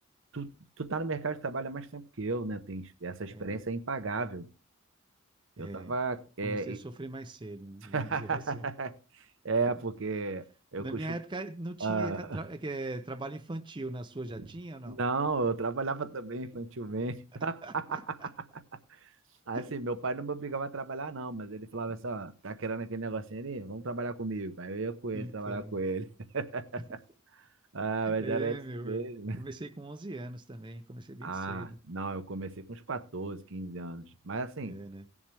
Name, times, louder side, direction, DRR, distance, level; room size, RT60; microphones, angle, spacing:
voice 1, 0.3-4.5 5.6-6.8 7.9-10.5 10.7-11.1 11.8-12.4 14.9-18.3 18.9-19.1 19.5-26.1 26.3-27.0 27.7-28.6 28.8-29.4 31.2-34.8, right 3 dB, 60° right, 0.9 m, -34 dB
voice 2, 5.6-5.9 6.4-8.6 10.8-15.0 17.6-18.3 19.5-19.7 25.1-25.8 28.0-29.0 29.4-31.8 34.6-35.1, right 2 dB, 20° right, 0.6 m, -40 dB
17.5 x 7.3 x 3.3 m
head